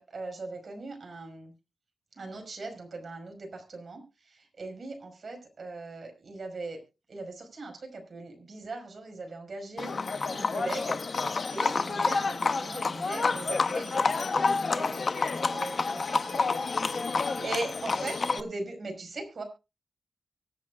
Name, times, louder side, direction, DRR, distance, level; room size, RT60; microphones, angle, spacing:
voice 1, 0.0-1.5 2.2-6.8 7.1-9.9 10.3-11.0 11.3-16.4 17.4-19.4, right 2 dB, 50° right, 3 dB, 5.3 m, -39 dB
Livestock farm animals working animals, 9.8-18.4, left 4 dB, 45° left, 0.9 m, -29 dB
voice 2, 15.8-18.2, left 5 dB, 90° left, 0 dB, 2.8 m, -39 dB
24.0 x 8.5 x 2.5 m, 0.28 s
wide cardioid pair, 150°, 0 cm